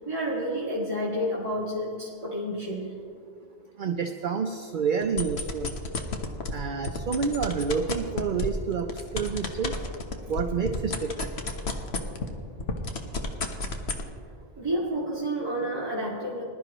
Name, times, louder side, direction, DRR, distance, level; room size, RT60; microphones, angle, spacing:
voice 1, 0.1-2.9 14.6-16.4, equal, 30° right, -9 dB, 2.4 m, -30 dB
voice 2, 3.8-5.7 6.5-8.9 9.1-9.7 10.3-11.3, right 6 dB, 55° right, 5 dB, 0.8 m, -28 dB
sound 1, 5.0-6.5 6.8-12.3 12.6-14.0, left 3 dB, 80° left, 1.3 m, -30 dB
20.5 x 12.0 x 3.0 m, 2.5 s
omnidirectional pair, 1.1 m